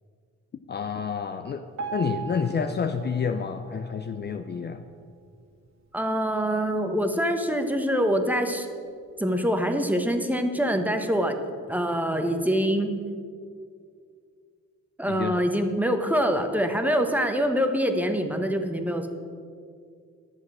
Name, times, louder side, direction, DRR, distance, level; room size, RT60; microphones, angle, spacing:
voice 1, 0.7-1.6 1.9-4.8 15.0-15.4, left 6 dB, 35° left, 7 dB, 0.5 m, -29 dB
Piano, 1.8-4.9 5.4-5.6 5.9-6.0 6.7-6.8 7.3-7.4, right 7 dB, 65° right, 2.5 m, -39 dB
voice 2, 5.9-8.7 9.2-11.4 11.7-12.9 15.0-19.1, equal, 5° right, 6 dB, 1.1 m, -25 dB
11.0 x 7.3 x 6.2 m, 2.2 s
cardioid pair, 90°, 30 cm